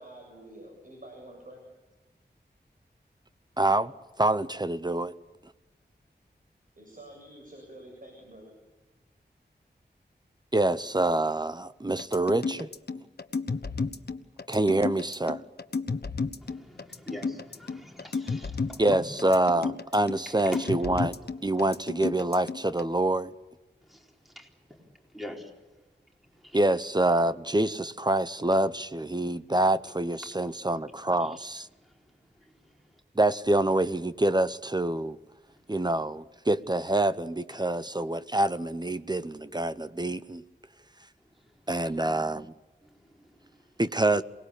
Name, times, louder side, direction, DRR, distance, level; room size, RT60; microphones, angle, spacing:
voice 1, 0.0-1.6 6.8-8.5, right 1 dB, 50° right, 7.3 m, -48 dB
voice 2, 3.6-3.9 4.2-5.1 10.5-12.7 14.5-15.4 18.8-21.2 21.4-23.3 26.5-31.7 33.2-35.2 35.7-40.4 41.7-42.5 43.8-44.2, right 2 dB, 25° right, 0.8 m, -26 dB
sound 1, 12.0-22.9, left 4 dB, 65° left, 1.2 m, -32 dB
voice 3, 16.4-19.0 20.3-20.7 23.8-25.5 26.2-26.6 30.2-30.5 31.2-31.4 31.8-33.0 35.5-35.8 41.2-41.7 42.8-43.8, left 1 dB, ahead, 4.3 m, -46 dB
28.0 x 19.5 x 8.6 m
wide cardioid pair, 80°, 18 cm